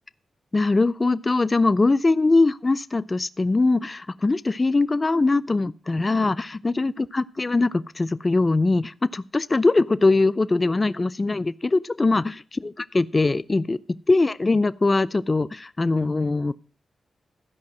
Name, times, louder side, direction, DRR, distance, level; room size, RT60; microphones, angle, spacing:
voice 1, 0.5-13.8 14.1-16.5, left 3 dB, 35° left, 17 dB, 0.5 m, -22 dB
13.0 x 5.2 x 7.6 m, 0.39 s
supercardioid pair, 45°, 0 cm